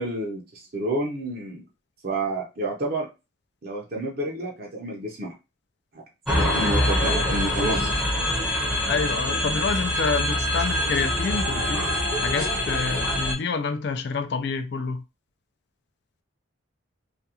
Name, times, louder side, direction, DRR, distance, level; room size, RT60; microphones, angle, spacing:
voice 1, 0.0-1.6 2.0-3.1 3.6-5.3 5.9-6.0 6.5-7.9, right 1 dB, 45° right, 0.5 m, -29 dB
sound 1, 6.3-13.3, left 1 dB, ahead, 0.6 m, -24 dB
voice 2, 8.9-11.9 12.2-15.0, left 4 dB, 55° left, 0.3 m, -28 dB
2.4 x 2.2 x 2.8 m
head